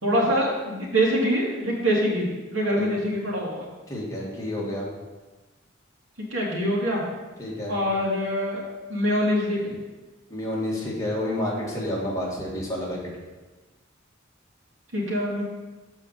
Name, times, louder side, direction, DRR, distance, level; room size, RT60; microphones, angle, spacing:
voice 1, 0.0-2.3 2.5-3.6 6.3-7.0 7.7-8.6 8.9-9.7 14.9-15.4, equal, 85° right, -4 dB, 2.6 m, -24 dB
voice 2, 3.9-4.9 7.4-7.8 10.3-13.0, left 1 dB, 15° left, -5 dB, 2.0 m, -29 dB
7.1 x 5.4 x 6.6 m, 1.2 s
head